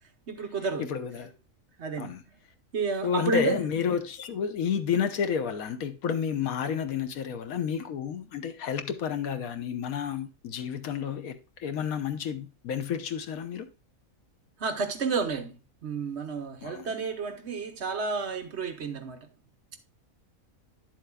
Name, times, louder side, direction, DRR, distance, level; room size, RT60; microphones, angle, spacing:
voice 1, 0.3-0.9 1.8-2.1 2.7-3.6 14.6-19.3, right 4 dB, 55° right, 1.1 m, -31 dB
voice 2, 0.8-1.3 2.0-2.2 3.0-13.7 16.6-16.9, left 7 dB, 90° left, 1.3 m, -30 dB
10.0 x 7.6 x 2.3 m
omnidirectional pair, 1.4 m